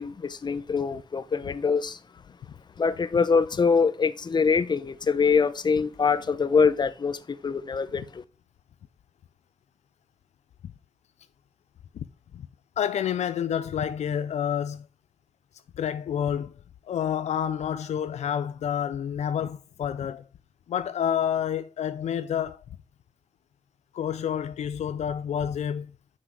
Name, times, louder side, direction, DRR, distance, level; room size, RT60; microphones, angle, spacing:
voice 1, 0.0-2.0 2.8-8.2, left 5 dB, 40° left, 0.7 m, -24 dB
voice 2, 12.8-14.9 15.8-16.5 16.9-20.2 20.7-22.6 23.9-25.9, left 9 dB, 80° left, 0.5 m, -29 dB
6.0 x 5.9 x 4.7 m
cardioid pair, 70°, 11 cm